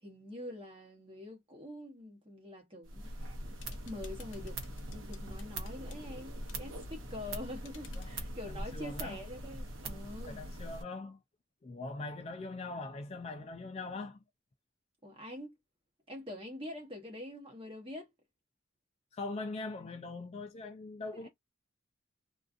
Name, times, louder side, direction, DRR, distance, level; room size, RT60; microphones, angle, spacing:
voice 1, 0.0-10.4 15.0-15.6 16.1-18.1 21.1-21.3, left 1 dB, 25° right, 0.9 m, -45 dB
sound 1, 2.9-10.8, right 1 dB, 80° right, 0.8 m, -42 dB
sound 2, 3.6-6.0 6.5-6.6 7.6-8.1, left 8 dB, 65° left, 0.7 m, -57 dB
voice 2, 8.5-9.2 10.3-11.2 11.6-14.2 19.1-21.3, left 3 dB, 30° left, 0.3 m, -41 dB
2.5 x 2.3 x 2.4 m
head